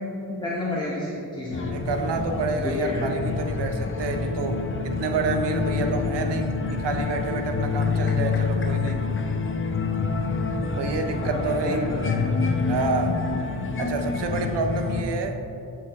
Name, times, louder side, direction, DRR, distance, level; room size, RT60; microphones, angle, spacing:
voice 1, 0.2-1.8 2.6-3.1 8.9-9.1 11.2-12.3, left 2 dB, 10° left, -6 dB, 1.1 m, -30 dB
sound 1, 1.5-15.0, left 4 dB, 30° left, 0.6 m, -27 dB
voice 2, 1.7-9.0 10.8-11.9 12.7-13.2 13.8-15.4, right 4 dB, 65° right, 6 dB, 0.8 m, -28 dB
7.1 x 4.8 x 3.5 m, 2.8 s
cardioid pair, 55°, 44 cm